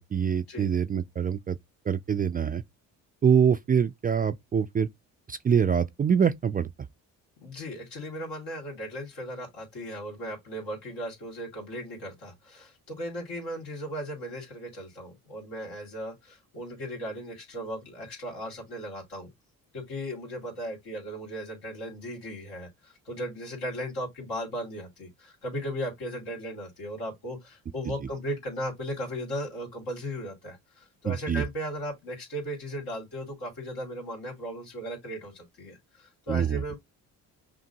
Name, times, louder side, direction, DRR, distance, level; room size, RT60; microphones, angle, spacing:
voice 1, 0.0-1.6 1.9-2.6 3.2-4.9 5.3-6.7 31.0-31.4 36.3-36.6, right 7 dB, 25° right, 0.3 m, -25 dB
voice 2, 7.4-19.3 19.7-36.8, equal, 75° left, 2.2 m, -37 dB
5.9 x 2.2 x 2.7 m
supercardioid pair, 60°, 41 cm